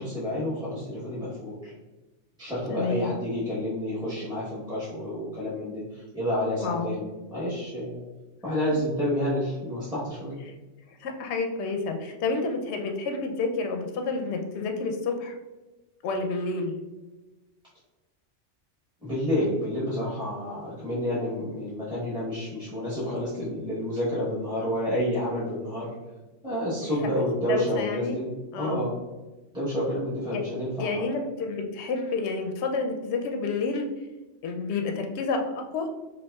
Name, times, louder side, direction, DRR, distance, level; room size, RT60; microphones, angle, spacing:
voice 1, 0.0-1.7 2.4-8.0 8.4-10.4 19.0-25.9 26.4-28.3 28.5-29.0 29.5-31.0, equal, 5° right, -10 dB, 0.9 m, -29 dB
voice 2, 2.7-3.1 6.6-6.9 10.5-10.6 10.9-15.3 16.0-16.8 27.0-27.1 27.4-28.2 28.5-28.9 30.3-30.4 30.8-33.9 34.4-35.9, left 4 dB, 70° left, 4 dB, 0.8 m, -29 dB
5.2 x 2.6 x 2.3 m, 1.1 s
omnidirectional pair, 1.2 m